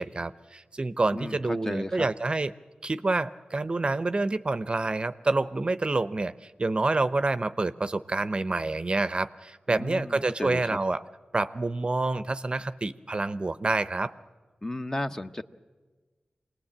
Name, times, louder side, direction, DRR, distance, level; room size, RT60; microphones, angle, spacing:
voice 1, 0.0-2.5 2.8-11.0 11.3-14.1, right 2 dB, 40° right, 13 dB, 0.7 m, -28 dB
voice 2, 1.1-2.1 9.7-10.8 14.6-15.4, left 1 dB, 20° left, 8 dB, 0.8 m, -34 dB
25.5 x 19.0 x 8.6 m, 1.3 s
wide cardioid pair, 65°, 3 cm